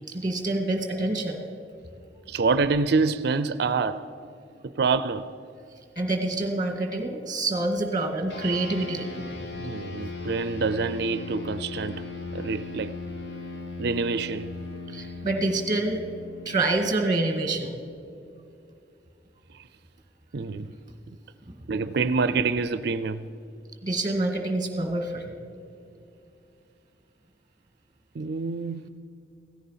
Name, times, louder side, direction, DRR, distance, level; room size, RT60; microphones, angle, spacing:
voice 1, 0.1-1.4 6.0-9.5 14.9-16.0 16.5-17.8 23.8-25.3, right 2 dB, 25° right, 1.9 m, -27 dB
voice 2, 2.3-4.0 4.6-5.3 9.6-12.1 12.3-12.9 13.8-14.5 20.3-20.7 21.7-23.2 28.1-28.9, right 4 dB, 60° right, 0.5 m, -26 dB
sound 1, 8.3-18.0, left 3 dB, 65° left, 1.8 m, -38 dB
17.0 x 14.0 x 5.7 m
head